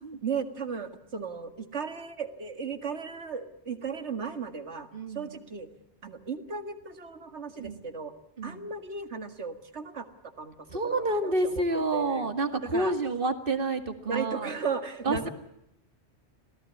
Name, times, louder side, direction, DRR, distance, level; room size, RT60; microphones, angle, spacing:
voice 1, 0.2-4.9 5.1-5.7 6.0-8.1 8.4-10.1 10.4-12.3 12.7-12.9 14.1-15.3, right 5 dB, 80° right, 8 dB, 2.2 m, -35 dB
voice 2, 4.9-5.4 7.6-7.9 8.4-8.7 10.7-14.5 15.0-15.3, right 2 dB, 50° right, 8 dB, 2.3 m, -29 dB
26.5 x 17.5 x 8.6 m, 0.84 s
omnidirectional pair, 1.1 m